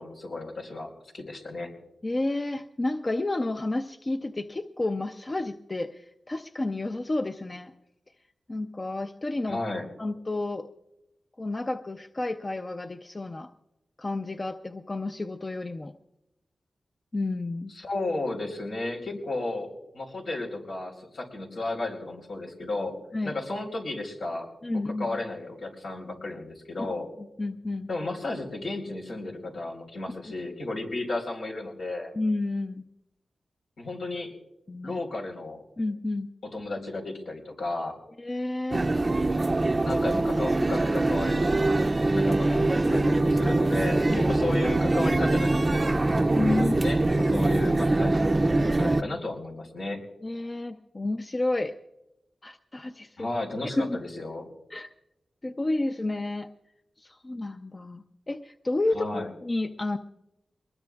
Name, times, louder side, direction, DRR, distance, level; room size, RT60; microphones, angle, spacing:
voice 1, 0.0-1.7 9.5-9.9 17.7-22.9 23.2-24.5 24.8-27.1 27.9-32.1 33.8-34.3 34.8-35.6 36.5-38.0 39.8-41.6 42.1-46.0 46.6-48.3 48.5-50.0 53.2-54.4 58.9-59.3, left 2 dB, 85° left, -1 dB, 4.2 m, -33 dB
voice 2, 2.0-7.7 8.5-9.6 10.0-10.7 11.4-13.5 14.0-15.9 17.1-17.7 23.1-23.3 24.6-25.2 27.2-27.9 32.2-32.8 34.7-35.0 35.8-36.3 38.2-38.9 44.1-44.2 46.3-46.7 50.2-51.8 52.4-53.3 53.8-54.0 54.7-54.9 55.4-56.5 57.0-60.0, left 2 dB, 35° left, 7 dB, 0.6 m, -30 dB
sound 1, 38.7-49.0, right 2 dB, 35° right, 0.5 m, -23 dB
23.5 x 20.5 x 2.4 m, 0.89 s
cardioid pair, 65°, 0 cm